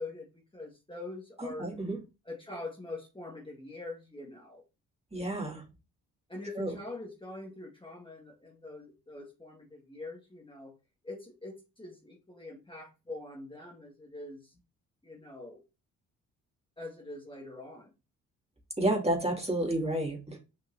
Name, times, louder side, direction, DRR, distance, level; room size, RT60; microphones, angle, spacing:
voice 1, 0.0-1.8 2.2-4.6 6.3-10.7 11.0-14.5 15.0-15.6 16.8-17.9, left 2 dB, 10° left, -1 dB, 2.0 m, -44 dB
voice 2, 1.4-2.0 5.1-5.6 6.6-6.7 18.8-20.4, right 1 dB, 15° right, 0 dB, 2.6 m, -30 dB
6.7 x 5.1 x 2.8 m, 0.29 s
hypercardioid pair, 45°, 41 cm